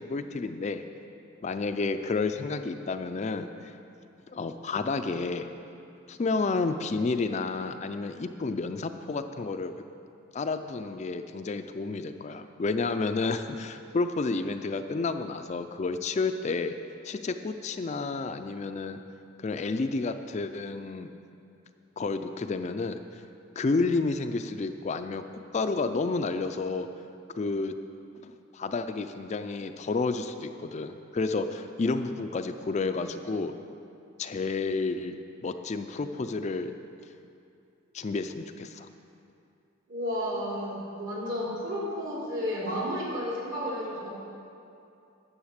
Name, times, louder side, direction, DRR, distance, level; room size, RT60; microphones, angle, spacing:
voice 1, 0.1-0.8 1.4-3.7 4.3-5.5 6.1-9.7 10.3-16.7 17.0-19.0 19.4-21.1 22.0-23.2 23.6-25.2 25.5-26.9 27.4-27.8 28.5-33.5 34.2-35.2 35.4-36.7 37.9-38.9, left 3 dB, 35° left, 8 dB, 0.4 m, -30 dB
voice 2, 39.9-44.1, equal, 65° right, -5 dB, 2.9 m, -32 dB
10.0 x 7.3 x 6.5 m, 2.6 s
head